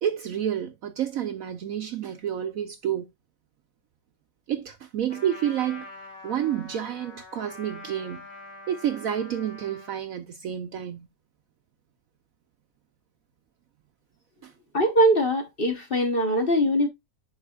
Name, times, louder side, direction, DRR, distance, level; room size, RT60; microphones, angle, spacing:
voice 1, 0.0-3.1 4.5-5.9 6.2-8.2 8.7-11.1 14.4-14.5, right 10 dB, 65° right, 0.9 m, -29 dB
Trumpet, 5.1-10.0, left 2 dB, 60° left, 3.9 m, -44 dB
voice 2, 14.7-16.9, equal, 40° left, 1.0 m, -22 dB
10.5 x 4.1 x 2.3 m
omnidirectional pair, 1.9 m